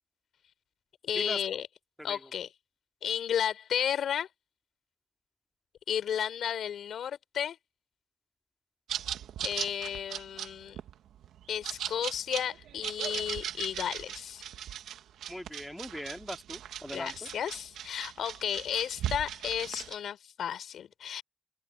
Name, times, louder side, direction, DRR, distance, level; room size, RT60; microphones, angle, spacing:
voice 1, 1.0-1.7 2.0-2.5 3.0-4.3 5.9-7.6 9.4-10.8 11.5-14.4 16.9-21.2, left 9 dB, 75° left, 3.4 m, -33 dB
sound 1, 8.9-20.0, right 10 dB, 85° right, 1.4 m, -38 dB
voice 2, 15.3-17.3, equal, 5° left, 2.4 m, -40 dB
supercardioid pair, 50°, 0 cm